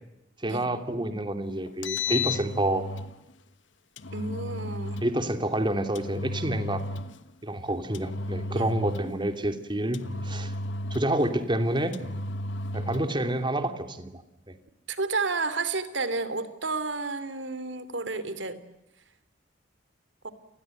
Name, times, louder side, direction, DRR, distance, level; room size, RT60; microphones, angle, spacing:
voice 1, 0.4-2.8 5.0-6.8 7.4-10.5 10.9-12.0 12.7-14.2, right 1 dB, 25° right, 8 dB, 2.8 m, -28 dB
Engine, 1.7-3.1 4.0-5.1 5.9-7.2 7.9-9.2 9.9-11.3 11.9-13.2, left 2 dB, 85° left, 1.3 m, -33 dB
voice 2, 4.1-5.0 8.5-8.7 14.9-18.6 20.2-20.3, right 3 dB, 75° right, 14 dB, 3.0 m, -31 dB
29.5 x 20.5 x 9.1 m, 0.93 s
head